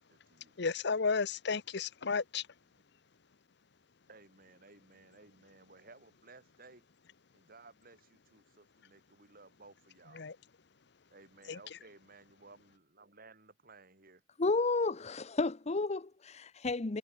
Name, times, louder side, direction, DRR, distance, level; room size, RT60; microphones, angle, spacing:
voice 1, 0.0-0.6 4.1-6.8 7.3-10.3 11.1-14.2, right 3 dB, 50° right, 6.4 m, -58 dB
voice 2, 0.6-2.5 10.1-10.4 11.5-11.8, left 5 dB, 65° left, 0.9 m, -33 dB
voice 3, 14.4-17.0, left 3 dB, 35° left, 0.8 m, -32 dB
head